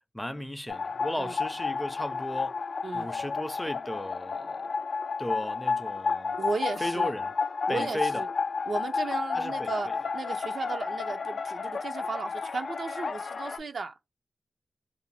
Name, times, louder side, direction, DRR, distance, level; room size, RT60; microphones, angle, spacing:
voice 1, 0.1-2.6 2.9-4.7 5.2-6.4 6.8-7.3 7.7-8.2 9.3-10.0, equal, 10° left, 0.5 m, -36 dB
sound 1, 0.7-13.6, left 4 dB, 75° left, 0.3 m, -31 dB
voice 2, 6.4-7.1 7.7-8.3 8.7-13.9, right 4 dB, 80° right, 0.4 m, -35 dB
2.5 x 2.0 x 3.2 m
cardioid pair, 50°, 0 cm